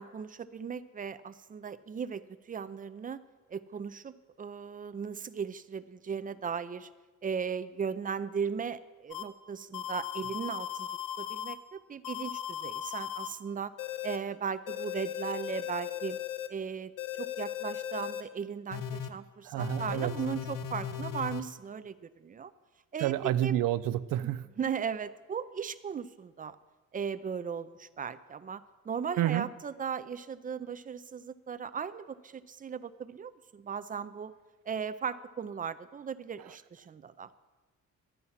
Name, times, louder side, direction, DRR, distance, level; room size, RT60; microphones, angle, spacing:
voice 1, 0.0-3.2 3.5-6.9 7.2-10.9 11.2-13.7 14.0-16.2 16.5-22.5 22.9-23.6 24.2-26.6 26.9-34.3 34.7-37.3, right 6 dB, 25° right, 13 dB, 0.4 m, -37 dB
sound 1, 9.1-9.2 9.7-11.5 12.0-13.3 13.8-14.2 14.7-16.5 17.0-18.2 18.7-19.1 19.6-21.4, left 10 dB, 80° left, 0.9 m, -37 dB
voice 2, 19.5-20.1 23.0-24.4 29.2-29.5, right 13 dB, 90° right, 16 dB, 0.5 m, -29 dB
12.0 x 9.7 x 5.7 m, 1.3 s
cardioid pair, 140°, 32 cm